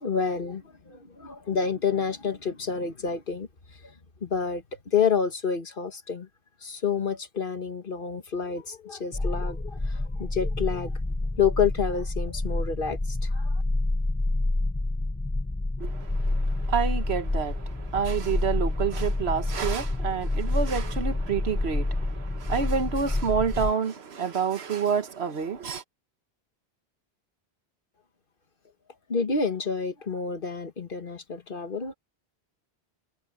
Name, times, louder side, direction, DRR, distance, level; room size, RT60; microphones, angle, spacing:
voice 1, 0.0-3.5 4.2-6.3 6.6-10.9 11.4-13.5 29.1-31.9, left 6 dB, 55° left, 1.6 m, -29 dB
sound 1, 9.1-23.7, left 2 dB, 15° left, 0.6 m, -28 dB
voice 2, 15.8-25.8, right 6 dB, 80° right, 1.4 m, -28 dB
omnidirectional pair, 1.1 m